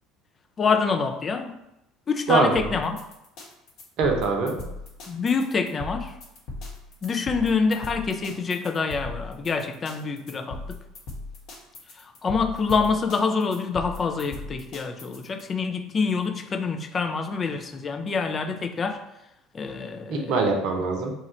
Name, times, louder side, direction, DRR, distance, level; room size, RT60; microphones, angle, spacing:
voice 1, 0.6-1.5 2.1-2.9 5.1-6.1 7.0-10.8 12.0-19.0 19.5-20.3, left 5 dB, 35° left, 6 dB, 0.4 m, -26 dB
voice 2, 2.3-2.7 4.0-4.6 20.1-21.1, right 3 dB, 55° right, 2 dB, 0.7 m, -23 dB
sound 1, 2.6-15.4, left 2 dB, 55° left, 0.9 m, -38 dB
3.0 x 2.4 x 4.2 m, 0.87 s
figure-of-eight pair, 60°, 0 cm